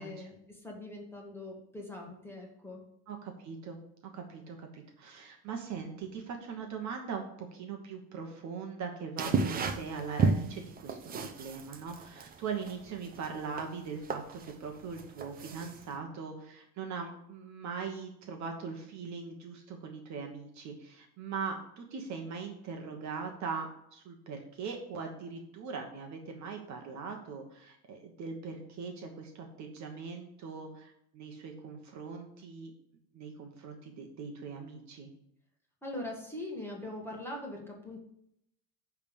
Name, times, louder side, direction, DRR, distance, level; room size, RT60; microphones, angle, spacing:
voice 1, 0.0-2.8 35.8-38.0, left 1 dB, 5° left, -1 dB, 1.6 m, -42 dB
voice 2, 3.1-3.8 4.1-32.7 33.1-35.1, right 5 dB, 40° right, 3 dB, 1.2 m, -41 dB
sound 1, 9.2-16.0, right 4 dB, 20° right, 0.6 m, -33 dB
10.0 x 3.6 x 7.1 m, 0.74 s
cardioid pair, 155°, 45 cm